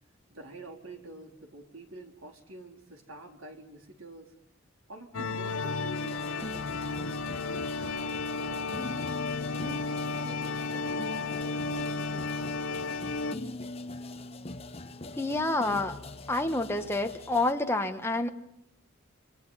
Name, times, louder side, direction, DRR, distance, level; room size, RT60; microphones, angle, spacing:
voice 1, 0.3-4.4 4.9-8.7 9.3-12.9 13.2-13.5, right 1 dB, 75° right, 3 dB, 4.1 m, -48 dB
sound 1, 5.1-13.4, left 3 dB, 80° left, 1.0 m, -33 dB
sound 2, 6.0-17.5, left 2 dB, 30° left, 1.1 m, -43 dB
voice 2, 15.2-16.0 16.3-18.3, left 2 dB, 10° left, 5 dB, 1.4 m, -28 dB
27.5 x 24.5 x 5.8 m, 0.81 s
head